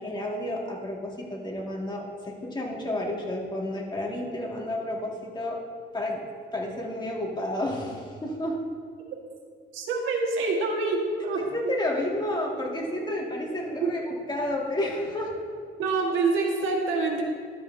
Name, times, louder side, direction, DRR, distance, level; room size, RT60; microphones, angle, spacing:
voice 1, 0.0-5.6 5.9-6.2 6.5-8.6 11.4-15.3, left 1 dB, 20° left, -2 dB, 1.8 m, -31 dB
voice 2, 9.7-11.5 13.8-13.9 15.8-17.2, right 3 dB, 90° right, 1 dB, 1.4 m, -26 dB
12.0 x 7.7 x 2.6 m, 2.1 s
cardioid pair, 90°, 20 cm